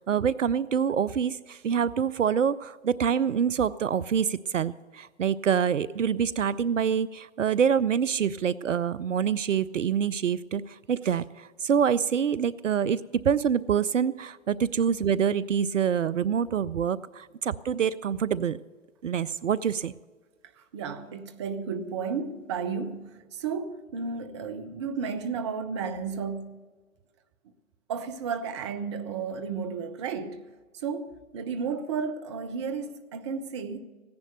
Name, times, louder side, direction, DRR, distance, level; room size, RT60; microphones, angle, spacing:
voice 1, 0.0-18.6 19.0-19.9, right 7 dB, 65° right, 0.5 m, -26 dB
voice 2, 20.5-26.6 27.9-30.5 30.7-33.8, right 5 dB, 20° right, 0.6 m, -33 dB
15.5 x 10.5 x 6.5 m
figure-of-eight pair, 125°, 40 cm